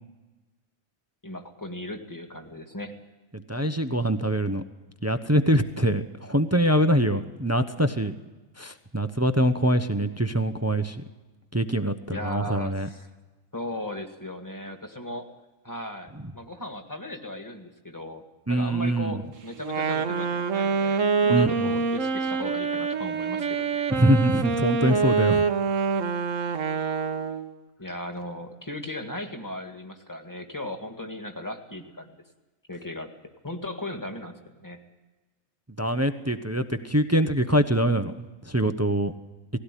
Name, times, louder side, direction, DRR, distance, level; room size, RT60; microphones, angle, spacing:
voice 1, 1.2-3.0 12.1-13.1 13.5-15.3 15.6-18.2 18.5-23.8 27.8-32.2 32.7-33.1 33.4-34.8, left 1 dB, 15° left, 5 dB, 1.9 m, -37 dB
voice 2, 3.5-4.6 5.0-8.1 8.6-11.0 11.5-12.9 18.5-19.2 21.3-21.7 23.9-25.4 35.8-38.1 38.4-39.1, right 1 dB, 15° right, 9 dB, 0.8 m, -24 dB
Wind instrument woodwind instrument, 19.6-27.6, right 5 dB, 70° right, 1.5 m, -25 dB
19.0 x 16.5 x 10.0 m, 1.2 s
omnidirectional pair, 1.4 m